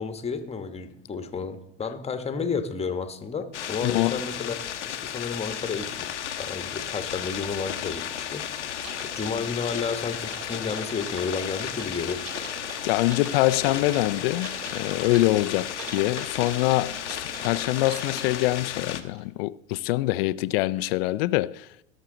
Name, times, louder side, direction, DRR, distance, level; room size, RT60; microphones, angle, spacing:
voice 1, 0.0-4.5 4.8-12.2, left 5 dB, 20° left, 1.2 m, -32 dB
sound 1, 3.5-19.0, left 9 dB, 85° left, 1.0 m, -34 dB
voice 2, 3.8-4.2 12.8-21.7, left 18 dB, 60° left, 0.5 m, -25 dB
sound 2, 7.4-10.2, left 4 dB, 5° right, 1.7 m, -53 dB
Typing, 8.7-19.2, right 3 dB, 40° right, 2.8 m, -43 dB
17.5 x 6.4 x 3.9 m
hypercardioid pair, 85°, 34 cm